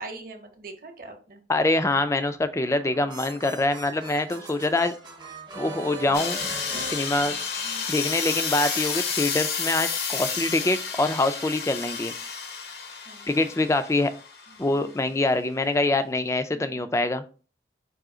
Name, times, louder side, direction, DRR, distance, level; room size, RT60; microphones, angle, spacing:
voice 1, 0.0-1.4 7.6-8.1 13.0-13.5 14.5-15.1 16.5-17.1, right 3 dB, 50° right, 5 dB, 0.9 m, -44 dB
voice 2, 1.5-5.0 5.6-6.4 6.9-7.4 7.9-12.1 13.3-14.1 14.6-17.2, left 2 dB, 15° left, 10 dB, 0.3 m, -24 dB
sound 1, 2.5-7.9, right 3 dB, 25° right, 0.6 m, -40 dB
sound 2, 6.1-14.7, left 6 dB, 60° left, 0.7 m, -31 dB
4.8 x 2.8 x 3.7 m, 0.37 s
head